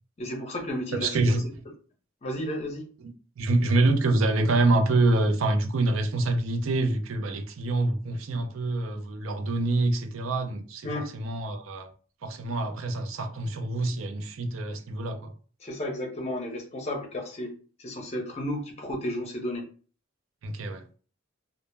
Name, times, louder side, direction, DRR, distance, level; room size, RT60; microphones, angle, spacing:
voice 1, 0.2-1.1 2.2-2.9 10.8-11.1 15.6-17.5 17.8-19.7, left 1 dB, 35° left, 0.6 m, -33 dB
voice 2, 0.9-1.6 3.0-11.9 12.2-15.3 20.4-20.8, right 2 dB, 90° right, 0.5 m, -26 dB
2.1 x 2.0 x 3.1 m
head